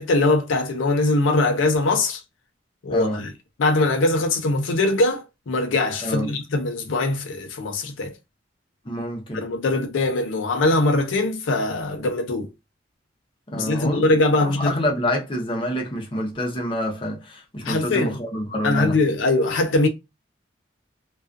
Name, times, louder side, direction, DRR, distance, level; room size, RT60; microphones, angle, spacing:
voice 1, 0.0-2.2 2.8-3.3 3.6-8.1 9.3-12.5 13.5-14.8 17.6-18.2 18.6-19.9, left 2 dB, 75° left, 0.5 m, -22 dB
voice 2, 2.9-3.2 6.0-6.3 8.8-9.4 13.5-14.1 14.4-19.0, left 1 dB, 25° left, 0.6 m, -27 dB
2.3 x 2.3 x 2.4 m
head